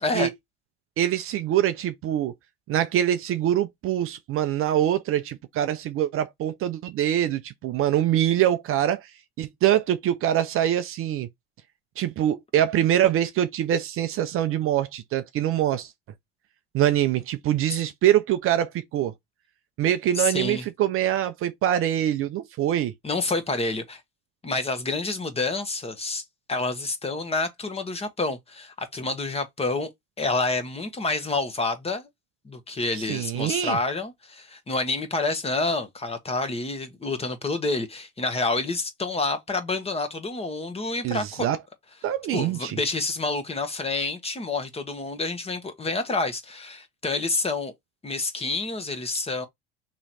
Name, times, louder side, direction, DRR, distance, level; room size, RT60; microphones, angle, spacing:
voice 1, 1.0-2.3 2.7-9.1 9.4-11.3 12.0-15.9 16.7-19.1 19.8-22.9 33.0-33.8 41.0-41.6 42.0-42.8, right 11 dB, 45° right, 0.6 m, -24 dB
voice 2, 20.2-20.6 23.0-24.0 24.4-26.2 26.5-29.9 30.2-32.1 32.4-41.5 42.3-47.7 48.0-49.5, left 3 dB, 20° left, 1.1 m, -28 dB
3.0 x 3.0 x 4.1 m
hypercardioid pair, 80°, 30 cm